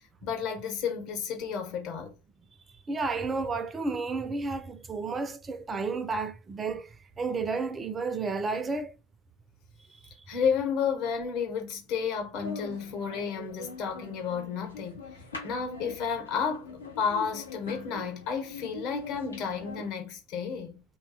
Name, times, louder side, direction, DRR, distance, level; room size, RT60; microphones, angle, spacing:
voice 1, 0.0-2.1 10.3-15.0 15.4-16.7 17.0-20.8, left 6 dB, 50° left, 1.0 m, -31 dB
voice 2, 2.9-8.9 9.9-10.0, right 4 dB, 20° right, 0.3 m, -32 dB
sound 1, 12.3-19.9, left 3 dB, 85° left, 0.7 m, -43 dB
2.6 x 2.2 x 2.7 m
figure-of-eight pair, 80°, 0 cm